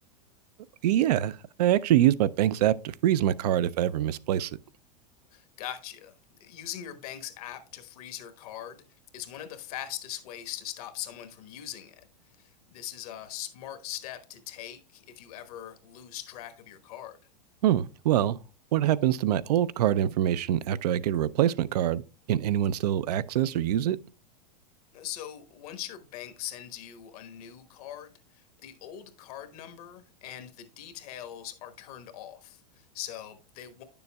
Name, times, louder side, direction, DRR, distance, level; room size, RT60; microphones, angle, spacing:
voice 1, 0.8-1.3 1.6-4.5 17.6-18.4 18.7-22.0 22.3-24.0, right 12 dB, 75° right, 0.4 m, -24 dB
voice 2, 5.3-6.1 6.4-8.8 9.1-12.1 12.4-17.2 24.9-33.8, left 12 dB, 65° left, 1.2 m, -41 dB
9.7 x 6.9 x 2.2 m
hypercardioid pair, 105°, 21 cm